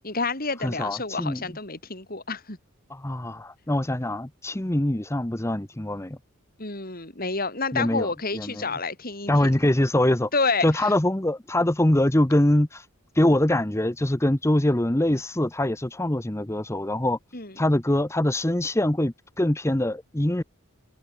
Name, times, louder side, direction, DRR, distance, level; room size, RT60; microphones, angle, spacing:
voice 1, 0.0-2.6 6.6-9.5 10.3-10.9 17.3-17.5, left 4 dB, 45° left, 5.6 m, -29 dB
voice 2, 0.6-1.4 2.9-6.2 7.7-8.7 9.3-10.3 10.6-12.9 13.1-17.2 17.6-20.4, left 1 dB, 15° left, 0.9 m, -23 dB
head